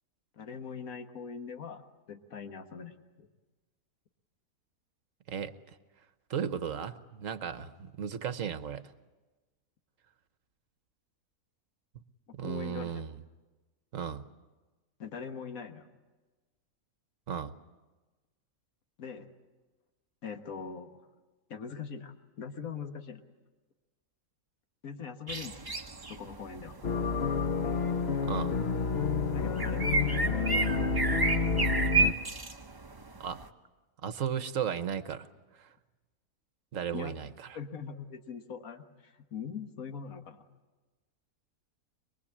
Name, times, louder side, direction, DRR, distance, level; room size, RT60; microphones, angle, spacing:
voice 1, 0.4-1.8 2.1-3.3 12.4-13.0 15.0-15.9 19.0-19.3 20.2-21.0 21.5-23.2 24.8-25.6 26.1-26.8 29.3-31.6 36.9-37.1 37.5-40.5, left 6 dB, 70° left, 7 dB, 1.9 m, -42 dB
voice 2, 6.3-8.8 12.3-13.1 13.9-14.3 17.3-17.5 28.2-28.6 33.2-33.4 34.0-35.3 35.6-35.7 36.7-37.6, right 8 dB, 60° right, 12 dB, 1.3 m, -35 dB
sound 1, 25.3-33.5, right 3 dB, 20° right, 0.8 m, -32 dB
sound 2, 26.8-32.1, left 4 dB, 50° left, 1.1 m, -29 dB
23.5 x 23.0 x 8.6 m, 1.2 s
omnidirectional pair, 1.6 m